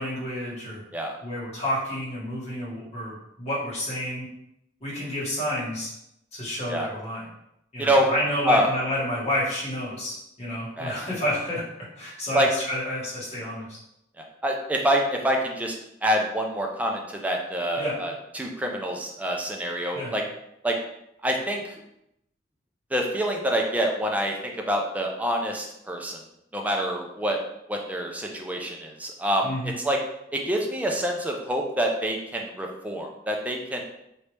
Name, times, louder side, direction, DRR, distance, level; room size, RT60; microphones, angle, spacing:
voice 1, 0.0-0.8 1.2-4.2 4.8-5.9 6.3-7.2 7.7-11.6 11.9-13.8 17.8-18.0 19.9-20.1 29.4-29.7, left 1 dB, 35° left, -7 dB, 1.5 m, -30 dB
voice 2, 7.8-8.1 8.4-8.7 10.8-11.0 12.3-12.5 14.2-15.7 16.0-20.2 20.6-20.8 21.2-21.8 22.9-26.2 26.5-27.4 27.7-29.5 29.8-30.0 30.3-33.8, equal, 10° right, 1 dB, 0.4 m, -26 dB
3.1 x 2.7 x 3.3 m, 0.81 s
head